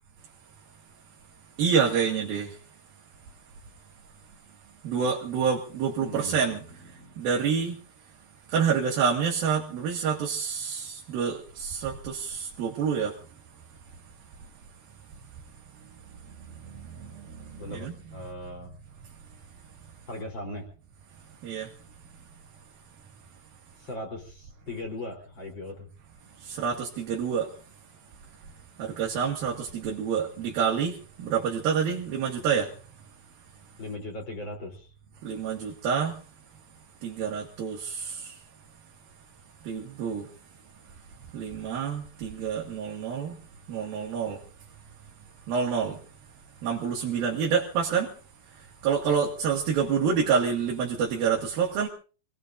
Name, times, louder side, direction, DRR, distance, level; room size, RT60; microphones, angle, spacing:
voice 1, 1.6-2.6 4.8-7.8 8.5-13.2 15.9-18.3 21.4-21.7 26.3-27.6 28.8-32.8 35.2-36.2 37.0-38.4 39.6-40.3 41.3-43.4 43.7-44.5 45.5-46.0 46.6-48.1 48.5-51.9, right 6 dB, 75° right, 3.6 m, -28 dB
voice 2, 6.0-6.7 6.9-7.1 17.6-18.7 20.1-20.7 23.8-25.9 33.8-34.9, left 1 dB, 30° left, 4.2 m, -38 dB
27.5 x 19.0 x 2.6 m
omnidirectional pair, 4.3 m